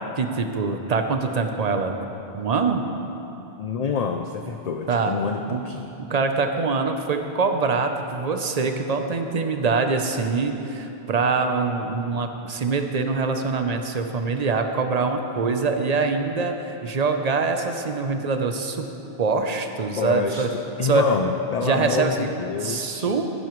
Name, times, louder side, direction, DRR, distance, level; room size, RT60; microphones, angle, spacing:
voice 1, 0.2-2.0 2.3-2.8 4.9-5.1 5.5-5.6 6.1-18.9 19.2-20.5 20.8-21.0 21.6-22.3 22.6-23.3, right 4 dB, 45° right, 5 dB, 0.7 m, -24 dB
voice 2, 3.6-5.9 20.0-23.1, left 5 dB, 50° left, 4 dB, 0.5 m, -27 dB
15.0 x 11.0 x 3.1 m, 3.0 s
omnidirectional pair, 1.0 m